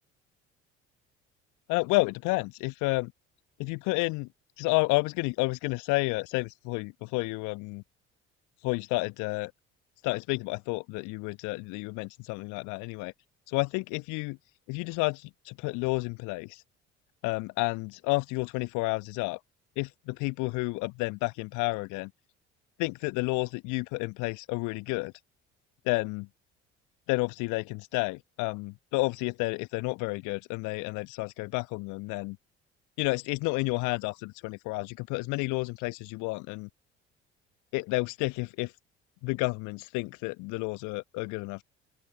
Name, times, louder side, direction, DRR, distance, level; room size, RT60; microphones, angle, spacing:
voice 1, 1.7-3.1 3.6-4.3 4.6-7.8 8.6-9.5 10.0-13.1 13.5-14.4 14.7-15.2 15.5-16.5 17.2-19.4 19.8-19.9 20.2-22.1 22.8-25.1 25.9-26.3 27.1-32.4 33.0-36.7 37.7-38.7 39.2-41.6, left 26 dB, 60° left, 1.1 m, -30 dB
open air
figure-of-eight pair, 55°, 35 cm